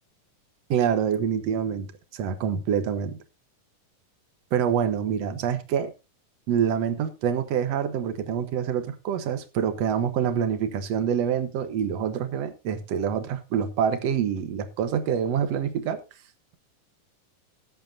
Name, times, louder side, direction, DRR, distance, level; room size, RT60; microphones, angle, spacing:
voice 1, 0.7-1.9 2.1-3.2 4.5-5.9 6.5-16.0, right 8 dB, 65° right, 1.7 m, -26 dB
19.0 x 8.2 x 2.6 m
omnidirectional pair, 4.2 m